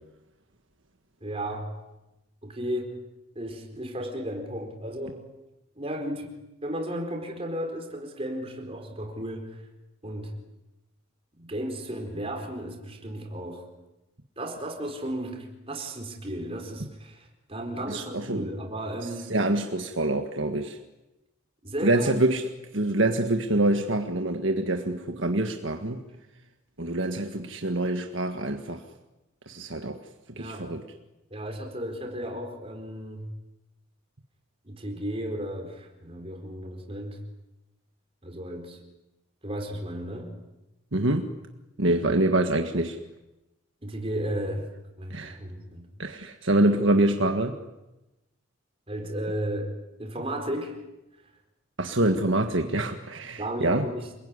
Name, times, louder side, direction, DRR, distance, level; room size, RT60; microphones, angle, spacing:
voice 1, 1.2-1.7 2.4-2.9 3.3-5.2 5.8-6.3 6.6-9.6 10.0-10.3 11.4-13.7 14.4-19.3 21.6-22.1 30.4-30.7 31.3-33.2 34.6-37.2 38.2-38.8 39.4-40.3 43.8-44.7 45.0-45.9 46.7-46.9 48.9-49.7 50.0-50.8 52.0-52.1 53.4-54.1, right 1 dB, 25° right, 3 dB, 4.6 m, -34 dB
voice 2, 17.9-18.5 19.3-20.8 21.8-26.0 26.8-28.8 29.5-30.0 30.4-30.8 40.9-41.3 41.8-43.0 45.1-45.4 46.0-47.6 51.8-53.9, right 1 dB, 60° right, 5 dB, 1.7 m, -25 dB
28.0 x 21.5 x 9.8 m, 0.98 s
head